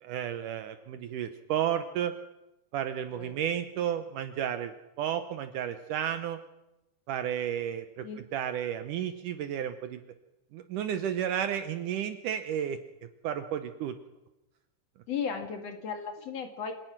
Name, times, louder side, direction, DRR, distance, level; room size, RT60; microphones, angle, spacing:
voice 1, 0.0-2.2 2.7-6.4 7.1-8.1 8.3-10.0 10.5-12.8 13.2-14.0, right 9 dB, 80° right, 9 dB, 1.9 m, -32 dB
voice 2, 15.1-16.7, left 6 dB, 50° left, 6 dB, 2.2 m, -35 dB
26.5 x 17.0 x 6.0 m, 0.95 s
omnidirectional pair, 4.7 m